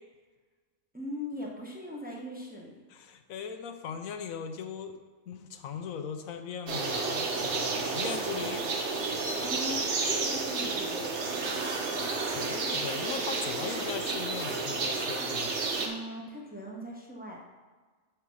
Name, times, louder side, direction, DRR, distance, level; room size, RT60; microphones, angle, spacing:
voice 1, 0.9-2.8 9.4-11.1 15.8-17.4, equal, 10° right, -2 dB, 0.9 m, -39 dB
voice 2, 2.9-5.0 5.3-8.7 12.2-15.6, left 7 dB, 90° left, 7 dB, 1.1 m, -39 dB
sound 1, 6.7-15.9, right 3 dB, 60° right, 1.2 m, -31 dB
6.2 x 4.8 x 6.3 m, 1.4 s
omnidirectional pair, 1.4 m